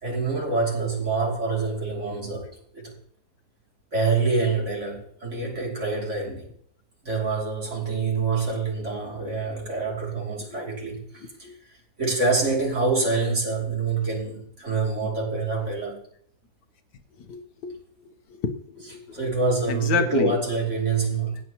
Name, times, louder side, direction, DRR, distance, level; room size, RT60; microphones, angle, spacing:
voice 1, 0.0-2.9 3.9-6.5 7.0-16.0 19.1-21.4, right 3 dB, 45° right, 3.2 m, -26 dB
voice 2, 17.3-17.8 18.4-19.3 19.7-20.4, left 5 dB, 75° left, 1.5 m, -29 dB
15.5 x 9.6 x 3.0 m
omnidirectional pair, 1.8 m